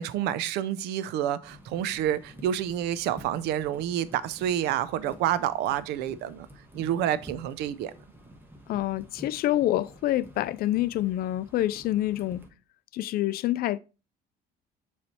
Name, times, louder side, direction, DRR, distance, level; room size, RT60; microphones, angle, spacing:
voice 1, 0.0-6.5 6.7-7.9, right 11 dB, 90° right, 0.5 m, -28 dB
sound 1, 1.4-12.5, equal, 10° right, 1.1 m, -50 dB
voice 2, 8.7-12.5 12.9-13.8, left 14 dB, 65° left, 0.4 m, -27 dB
6.9 x 3.2 x 4.2 m
cardioid pair, 110°, 17 cm